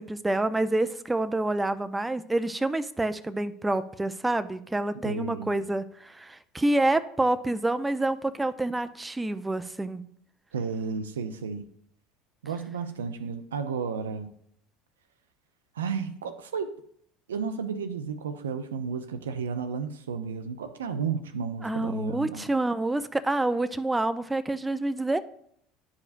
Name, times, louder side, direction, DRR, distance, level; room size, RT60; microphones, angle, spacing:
voice 1, 0.0-10.0 21.6-25.2, right 2 dB, 10° right, 11 dB, 0.5 m, -27 dB
voice 2, 5.0-5.5 10.5-11.6 12.4-14.3 15.8-16.8 17.3-22.5, right 5 dB, 85° right, 8 dB, 0.5 m, -32 dB
10.5 x 4.9 x 2.6 m, 0.67 s
hypercardioid pair, 75°, 0 cm